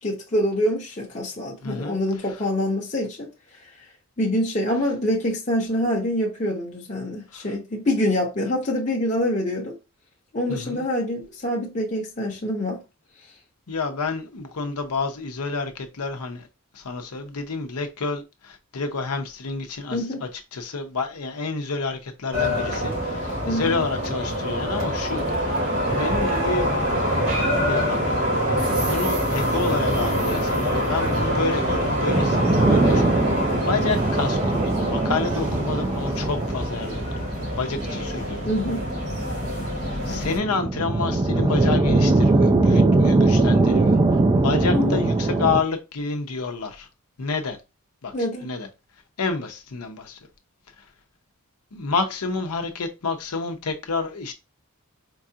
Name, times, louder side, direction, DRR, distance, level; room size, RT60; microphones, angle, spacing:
voice 1, 0.0-3.3 4.2-9.8 10.3-12.8 19.9-20.2 23.4-23.8 38.5-38.8 44.7-45.0 48.1-48.5, left 1 dB, 35° left, 0.8 m, -25 dB
voice 2, 1.6-2.0 7.3-7.5 10.5-10.8 13.7-16.5 16.7-25.6 25.9-26.7 27.1-27.4 27.7-28.0 28.8-33.2 33.7-38.4 40.0-44.0 44.4-46.9 47.2-47.6 48.0-48.1 48.4-48.7 49.2-50.2 51.7-54.3, left 4 dB, 80° left, 0.8 m, -29 dB
sound 1, 22.3-40.4, equal, 80° right, 2.2 m, -25 dB
sound 2, 32.1-45.6, right 2 dB, 20° right, 0.4 m, -21 dB
4.6 x 2.4 x 2.7 m
head